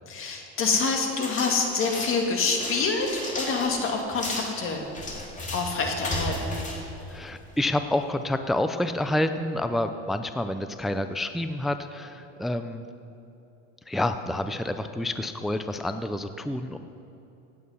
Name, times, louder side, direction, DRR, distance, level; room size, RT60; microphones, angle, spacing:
voice 1, 0.1-3.1 3.4-4.8 5.5-6.7, left 4 dB, 40° left, 2 dB, 2.0 m, -26 dB
sound 1, 1.1-7.7, left 1 dB, 25° left, 2.8 m, -35 dB
voice 2, 7.1-12.8 13.9-16.8, left 1 dB, ahead, 9 dB, 0.4 m, -28 dB
17.0 x 8.7 x 5.5 m, 2.9 s
supercardioid pair, 115°, 32 cm